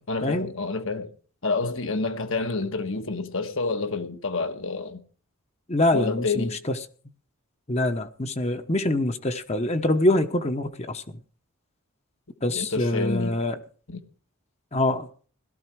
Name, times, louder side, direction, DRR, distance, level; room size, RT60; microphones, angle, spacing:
voice 1, 0.1-1.1 1.4-5.0 5.9-6.6 12.5-13.4 13.9-14.0, left 3 dB, 65° left, 1.5 m, -28 dB
voice 2, 5.7-6.5 7.7-11.2 12.4-13.6 14.7-15.1, left 1 dB, 30° left, 1.0 m, -24 dB
17.0 x 13.0 x 4.7 m
head